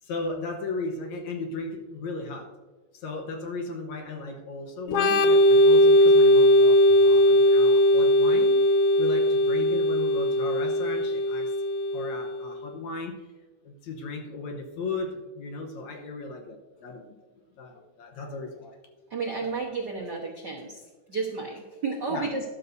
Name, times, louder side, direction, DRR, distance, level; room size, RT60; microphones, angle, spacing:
voice 1, 0.0-2.6 2.9-11.5 11.9-13.3 13.6-17.2 17.6-18.8 22.1-22.3, left 3 dB, 65° left, 3 dB, 2.1 m, -36 dB
Organ, 4.9-12.4, left 1 dB, 85° left, 1.3 m, -19 dB
voice 2, 19.1-20.8 21.1-22.4, right 4 dB, 65° right, -2 dB, 1.0 m, -32 dB
12.5 x 12.5 x 2.7 m, 1.3 s
omnidirectional pair, 3.8 m